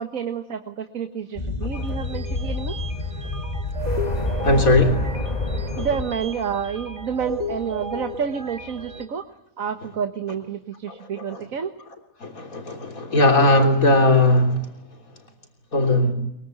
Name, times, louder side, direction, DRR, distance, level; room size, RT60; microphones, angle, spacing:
voice 1, 0.0-2.7 5.8-9.2 9.6-11.7, right 7 dB, 70° right, 7 dB, 1.7 m, -29 dB
sound 1, 1.4-6.3, left 2 dB, 30° left, 2.0 m, -28 dB
sound 2, 1.7-9.1, equal, 55° right, 2.2 m, -34 dB
voice 2, 4.4-5.3 5.8-5.9 10.9-11.5 12.2-14.7 15.7-16.1, left 1 dB, 75° left, 4 dB, 3.8 m, -19 dB
23.0 x 23.0 x 9.3 m, 0.78 s
omnidirectional pair, 1.5 m